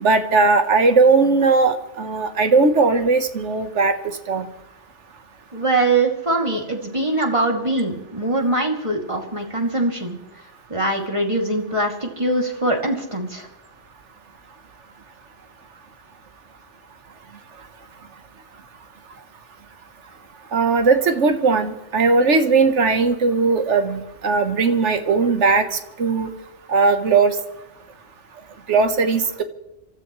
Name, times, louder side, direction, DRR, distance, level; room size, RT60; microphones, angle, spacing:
voice 1, 0.0-3.9 4.3-4.5 20.5-26.3 26.7-27.3 28.7-29.4, right 4 dB, 85° right, 8 dB, 1.5 m, -18 dB
voice 2, 5.5-10.2 10.7-13.5, right 2 dB, 25° right, 1 dB, 2.6 m, -22 dB
28.5 x 13.5 x 3.1 m, 0.93 s
omnidirectional pair, 1.2 m